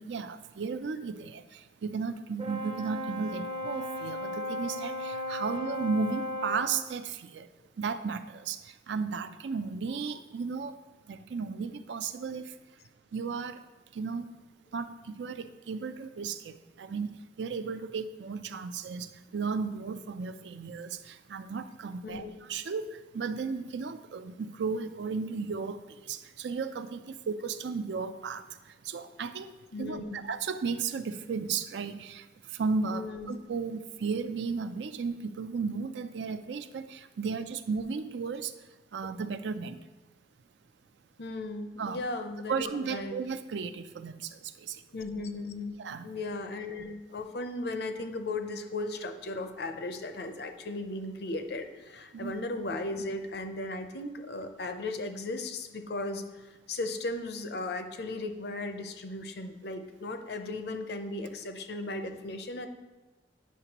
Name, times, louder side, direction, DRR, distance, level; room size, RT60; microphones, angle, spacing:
voice 1, 0.0-7.5 7.8-10.8 11.1-12.5 13.1-13.6 13.9-14.3 14.7-28.5 28.8-29.5 29.8-32.3 32.5-38.5 38.9-39.8 41.8-42.0 42.5-44.8 45.8-46.1 52.1-52.3, right 5 dB, 80° right, 11 dB, 0.4 m, -34 dB
Brass instrument, 2.4-6.8, left 1 dB, 30° right, 0.6 m, -36 dB
voice 2, 29.7-30.2 32.9-33.3 41.2-43.2 44.9-45.8 46.0-62.7, left 2 dB, 65° left, 7 dB, 0.6 m, -36 dB
9.3 x 5.8 x 2.9 m, 1.2 s
head